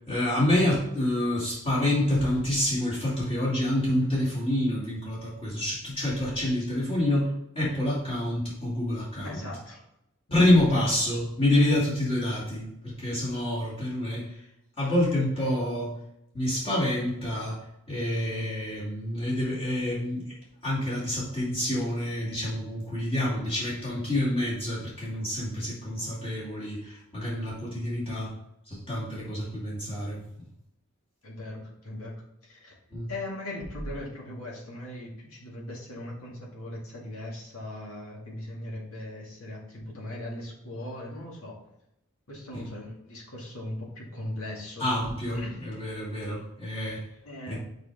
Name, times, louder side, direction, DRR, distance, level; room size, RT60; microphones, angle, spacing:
voice 1, 0.1-7.3 7.5-9.4 10.3-14.4 14.8-15.9 16.3-20.3 20.6-28.3 28.7-30.2 32.9-33.1 42.5-42.7 44.8-47.0 47.5-47.6, left 1 dB, 25° left, -8 dB, 2.6 m, -27 dB
voice 2, 9.2-9.8 10.3-10.4 31.2-32.1 32.4-32.7 33.1-41.5 42.3-44.9 45.3-45.6 47.2-47.6, left 1 dB, 70° left, -3 dB, 2.1 m, -39 dB
6.6 x 4.8 x 3.5 m, 0.82 s
head